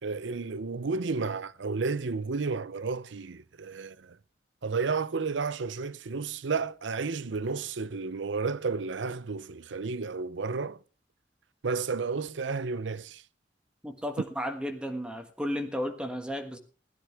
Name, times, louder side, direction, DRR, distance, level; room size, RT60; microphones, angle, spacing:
voice 1, 0.0-4.2 4.6-10.8 11.6-13.2, right 4 dB, 85° right, 0.6 m, -32 dB
voice 2, 13.8-16.6, equal, 5° right, 1.4 m, -33 dB
17.0 x 13.0 x 3.5 m
head